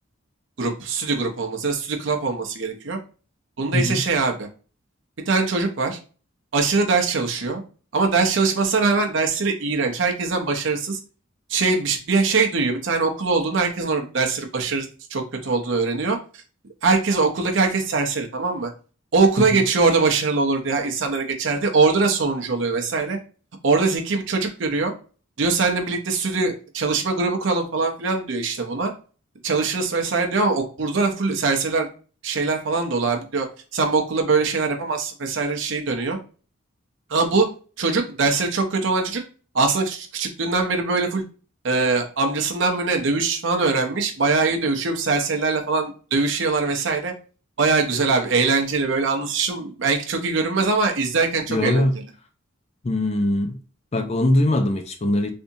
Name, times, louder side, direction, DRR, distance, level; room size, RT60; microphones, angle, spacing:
voice 1, 0.6-3.0 3.6-4.5 5.3-6.0 6.5-7.6 7.9-11.0 11.5-16.4 16.8-18.7 19.1-23.2 23.6-24.9 25.4-28.9 29.4-31.9 32.2-33.5 33.7-36.2 37.1-37.5 37.8-39.2 39.5-41.2 41.6-47.1 47.6-52.0, right 4 dB, 60° right, 0.6 m, -22 dB
voice 2, 51.5-51.9 52.8-53.6 53.9-55.3, left 1 dB, 30° left, 0.4 m, -21 dB
3.4 x 2.7 x 2.6 m
head